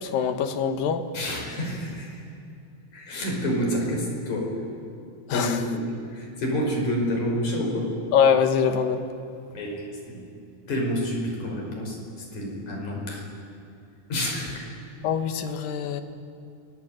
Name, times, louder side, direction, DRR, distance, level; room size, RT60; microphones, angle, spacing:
voice 1, 0.0-1.0 5.3-5.6 8.1-9.1 15.0-16.0, left 7 dB, 75° left, 8 dB, 3.1 m, -23 dB
voice 2, 1.1-2.2 2.9-4.6 5.3-8.0 9.5-10.2 10.7-12.0 12.3-13.2 14.1-14.7, equal, 55° left, -1 dB, 6.7 m, -28 dB
30.0 x 21.0 x 9.2 m, 2.6 s
omnidirectional pair, 4.0 m